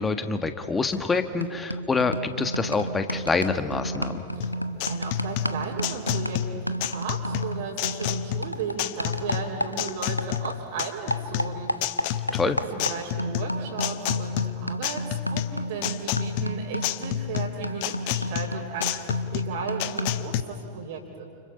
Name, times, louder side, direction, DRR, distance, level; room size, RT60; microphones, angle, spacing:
voice 1, 0.0-4.2 12.3-12.6, left 4 dB, 15° left, 9 dB, 1.6 m, -26 dB
sound 1, 0.9-1.1 1.4-10.6 10.8-20.3, equal, 90° left, 0.9 m, -33 dB
voice 2, 4.3-12.4 12.7-15.0 15.3-21.2, right 5 dB, 55° right, -4 dB, 3.9 m, -35 dB
sound 2, 4.4-20.4, left 12 dB, 45° left, 1.1 m, -30 dB
30.0 x 29.0 x 5.6 m, 2.9 s
figure-of-eight pair, 90°, 0 cm